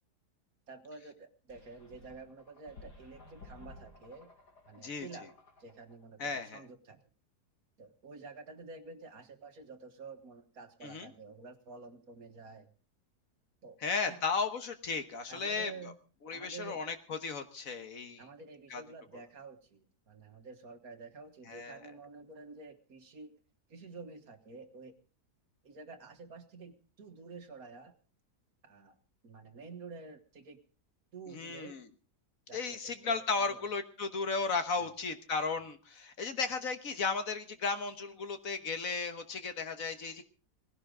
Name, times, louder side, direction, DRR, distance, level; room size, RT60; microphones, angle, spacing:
voice 1, 0.7-4.3 4.7-5.3 5.6-7.0 7.8-12.7 13.6-13.8 14.1-14.2 15.3-16.0 16.3-16.8 18.2-23.3 23.7-24.9 25.6-27.9 28.6-29.0 29.2-30.6 31.1-31.7 32.5-33.7 34.8-34.9, right 4 dB, 60° right, 7 dB, 1.9 m, -49 dB
sound 1, 1.5-6.0, left 2 dB, 80° left, 3.4 m, -55 dB
voice 2, 6.2-6.6 10.8-11.1 13.8-15.7 16.2-18.2 18.7-18.8 21.5-21.8 31.3-31.8 32.5-40.2, left 4 dB, 60° left, 9 dB, 1.6 m, -35 dB
19.0 x 16.5 x 3.8 m, 0.37 s
omnidirectional pair, 1.7 m